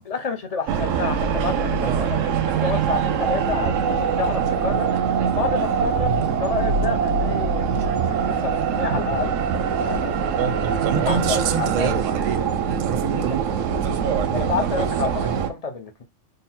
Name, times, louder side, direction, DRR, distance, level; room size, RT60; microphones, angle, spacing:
voice 1, 0.0-2.3 2.6-4.9 5.4-7.6 8.3-10.4 10.8-11.4 11.8-11.9 13.0-13.2 14.3-16.0, left 5 dB, 45° left, 0.5 m, -29 dB
sound 1, 0.7-15.5, right 7 dB, 85° right, 1.0 m, -23 dB
voice 2, 1.8-2.2 4.4-4.7 5.6-5.9 6.2-6.3 7.7-7.8 10.4-14.4, right 7 dB, 50° right, 0.5 m, -30 dB
3.8 x 2.1 x 4.1 m
omnidirectional pair, 1.3 m